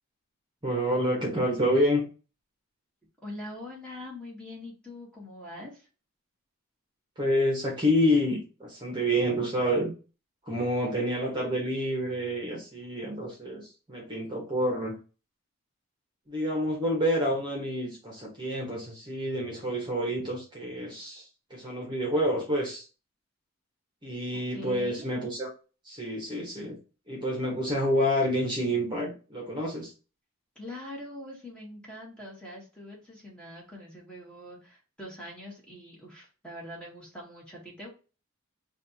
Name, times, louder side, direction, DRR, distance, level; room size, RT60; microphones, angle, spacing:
voice 1, 0.6-2.0 7.2-9.9 10.5-15.0 16.3-21.2 21.5-22.8 24.0-25.5 25.8-26.8 27.1-29.9, equal, 20° right, -2 dB, 1.1 m, -28 dB
voice 2, 3.2-5.9 24.3-25.1 30.5-37.9, left 1 dB, 5° left, -3 dB, 1.4 m, -43 dB
3.3 x 2.6 x 4.0 m, 0.34 s
head